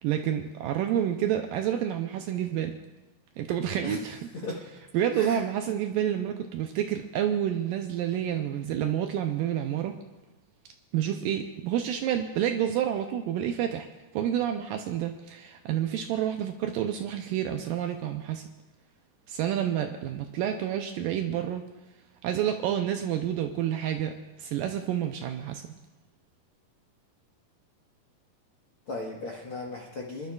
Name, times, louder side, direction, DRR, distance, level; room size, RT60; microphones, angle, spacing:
voice 1, 0.0-2.8 3.4-4.2 4.9-10.0 10.9-13.9 14.1-18.4 19.3-21.7 22.2-25.6, right 10 dB, 80° right, 5 dB, 2.1 m, -29 dB
voice 2, 28.9-30.3, left 2 dB, 65° left, -3 dB, 1.3 m, -36 dB
25.5 x 12.0 x 2.4 m, 1.1 s
omnidirectional pair, 4.4 m